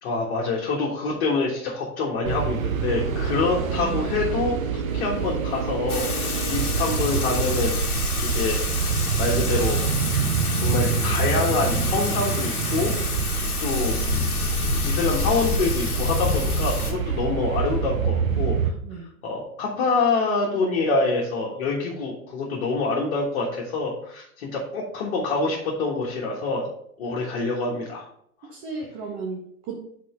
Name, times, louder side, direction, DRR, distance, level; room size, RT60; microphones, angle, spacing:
voice 1, 0.0-4.6 4.9-7.8 8.3-8.6 9.2-9.8 10.5-12.9 13.6-14.0 14.8-18.7 19.2-26.7 27.0-28.1, left 3 dB, 45° left, -3 dB, 1.5 m, -26 dB
sound 1, 2.2-18.7, right 6 dB, 65° right, 0.9 m, -26 dB
Thunder / Rain, 5.9-16.9, left 3 dB, 80° left, 1.2 m, -28 dB
voice 2, 28.4-29.8, right 4 dB, 30° right, -1 dB, 1.0 m, -34 dB
6.1 x 4.3 x 4.3 m, 0.68 s
figure-of-eight pair, 105°, 44 cm